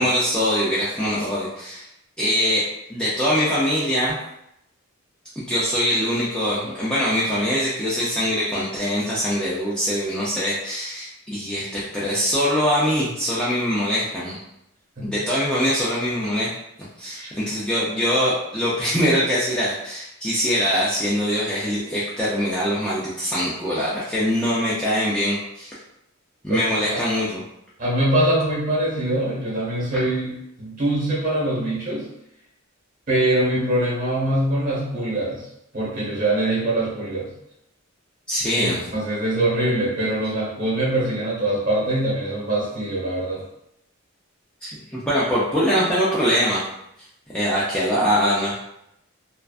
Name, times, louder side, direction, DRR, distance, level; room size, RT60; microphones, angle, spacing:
voice 1, 0.0-1.9 2.2-2.6 2.9-4.2 5.4-14.4 15.0-16.5 17.0-25.8 26.4-27.4 38.3-38.8 44.6-46.6 47.3-48.5, equal, 5° left, -9 dB, 0.3 m, -23 dB
voice 2, 17.0-17.3 26.5-27.0 27.8-30.3 30.6-32.1 33.1-35.4 35.7-37.3 38.6-43.4, right 1 dB, 40° right, -6 dB, 1.0 m, -23 dB
2.5 x 2.2 x 2.3 m, 0.80 s
head